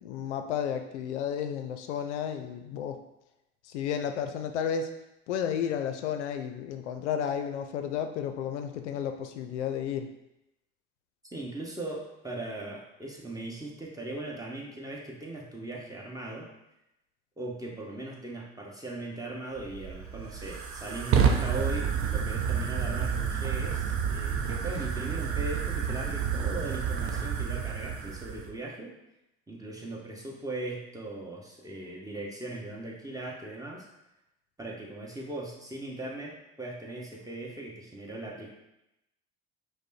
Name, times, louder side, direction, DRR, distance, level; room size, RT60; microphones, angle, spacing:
voice 1, 0.0-3.0 3.6-4.9 5.3-10.1, left 8 dB, 90° left, 7 dB, 0.5 m, -32 dB
voice 2, 11.2-16.5 17.4-28.9 29.5-33.9 34.6-38.5, right 2 dB, 10° right, -2 dB, 1.2 m, -39 dB
Fire, 19.6-28.5, right 7 dB, 40° right, 0.6 m, -29 dB
5.1 x 2.1 x 4.1 m, 0.88 s
hypercardioid pair, 70°, 34 cm